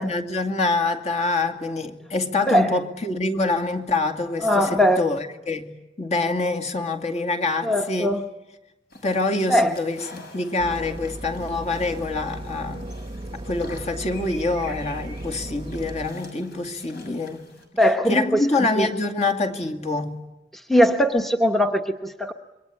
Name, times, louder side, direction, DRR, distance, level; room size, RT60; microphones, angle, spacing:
voice 1, 0.0-8.1 9.0-12.9 13.3-17.4 18.1-20.2, left 3 dB, 40° left, 2.4 m, -26 dB
voice 2, 2.4-2.8 4.4-5.0 7.6-8.3 9.5-9.7 17.7-18.9 20.5-22.3, equal, ahead, 1.1 m, -20 dB
sound 1, 8.9-17.6, left 2 dB, 60° left, 6.7 m, -46 dB
sound 2, 10.6-16.1, right 1 dB, 30° right, 0.9 m, -36 dB
27.0 x 23.5 x 8.7 m
head